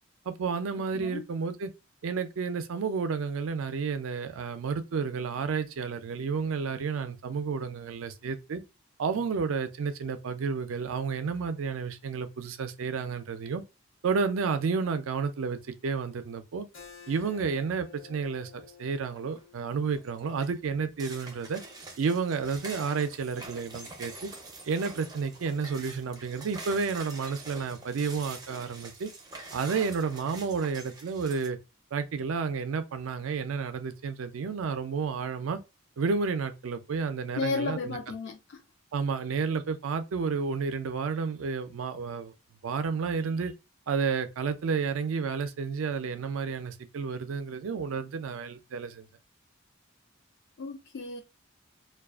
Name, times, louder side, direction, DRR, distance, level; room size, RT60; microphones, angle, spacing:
voice 1, 0.3-1.7 2.0-8.6 9.0-13.6 14.0-16.7 17.1-21.6 22.0-24.3 24.6-29.1 29.5-31.6 31.9-35.6 36.0-38.0 38.9-42.3 42.6-43.5 43.9-49.1, right 5 dB, 80° right, 0.4 m, -31 dB
Keyboard (musical), 16.7-21.9, left 7 dB, 75° left, 1.1 m, -53 dB
sound 1, 19.0-19.4 19.8-31.5, right 3 dB, 20° right, 0.5 m, -45 dB
voice 2, 37.4-38.6 50.6-51.2, left 4 dB, 55° left, 0.4 m, -33 dB
2.4 x 2.2 x 2.3 m
head